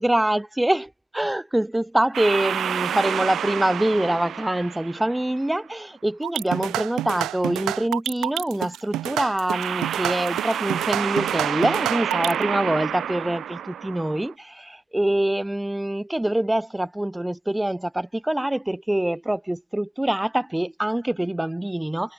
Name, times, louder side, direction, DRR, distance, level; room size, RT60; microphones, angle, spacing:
voice 1, 0.0-22.1, right 1 dB, 10° right, 2.7 m, -25 dB
sound 1, 2.1-5.5 9.5-14.3, right 9 dB, 65° right, 1.8 m, -29 dB
sound 2, 6.2-12.4, right 14 dB, 85° right, 0.5 m, -28 dB
cardioid pair, 85°, 0 cm